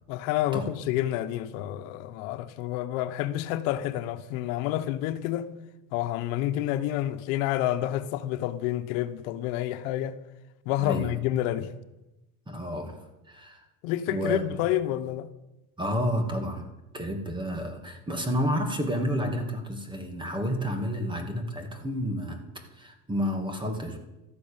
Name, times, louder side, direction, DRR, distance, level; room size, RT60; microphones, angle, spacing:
voice 1, 0.1-5.5 5.9-10.2 10.6-11.7 13.8-15.3, left 13 dB, 80° left, 1.2 m, -29 dB
voice 2, 10.8-11.1 12.5-13.0 13.3-13.6 14.1-14.6 15.8-16.7 16.9-22.4 22.7-24.0, equal, 10° right, 2.3 m, -30 dB
13.5 x 12.5 x 8.8 m
cardioid pair, 140°, 41 cm